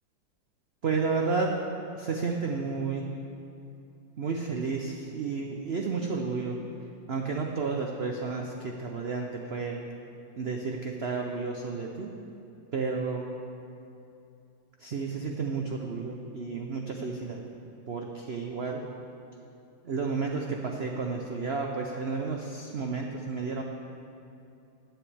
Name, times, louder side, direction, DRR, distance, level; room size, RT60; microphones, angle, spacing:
voice 1, 0.8-1.6 1.9-3.1 4.2-6.6 7.1-9.8 10.4-12.1 12.7-13.3 14.8-17.4 17.9-18.8 19.8-23.6, right 4 dB, 85° right, 1 dB, 0.5 m, -31 dB
15.5 x 9.2 x 3.4 m, 2.7 s
omnidirectional pair, 2.0 m